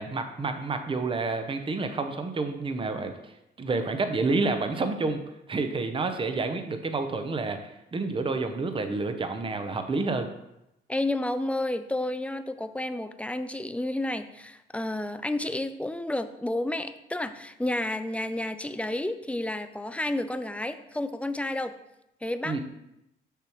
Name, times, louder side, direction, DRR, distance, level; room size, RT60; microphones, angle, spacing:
voice 1, 0.0-5.2 5.5-10.3 22.4-22.6, right 3 dB, 25° right, 7 dB, 0.7 m, -29 dB
voice 2, 10.9-21.7 22.2-22.6, left 1 dB, 5° left, 10 dB, 0.4 m, -31 dB
6.6 x 6.3 x 3.0 m, 0.86 s
cardioid pair, 90°, 20 cm